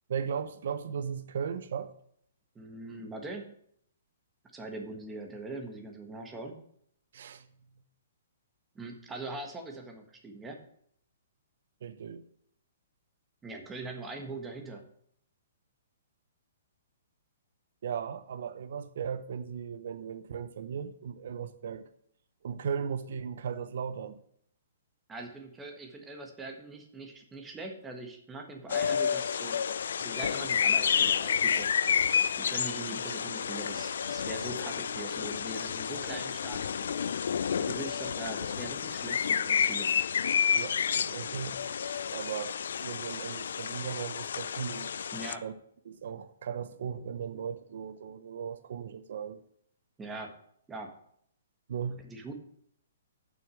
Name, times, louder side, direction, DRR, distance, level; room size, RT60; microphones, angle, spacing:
voice 1, 0.1-1.9 7.1-7.5 11.8-12.2 17.8-21.9 22.4-24.2 36.1-36.2 40.5-41.6 42.1-42.5 42.8-44.9 45.4-45.5 45.9-49.4 51.7-52.0, right 7 dB, 60° right, 11 dB, 0.8 m, -37 dB
voice 2, 2.5-3.5 4.5-6.6 8.7-10.6 13.4-14.8 25.1-29.6 30.0-31.7 32.4-37.1 37.6-39.9 45.1-45.4 50.0-50.3 50.7-50.9 52.0-52.3, right 2 dB, 10° right, 3 dB, 1.4 m, -42 dB
sound 1, 28.7-45.4, left 7 dB, 70° left, 0.4 m, -30 dB
7.0 x 6.2 x 7.7 m, 0.67 s
hypercardioid pair, 160°, 0 cm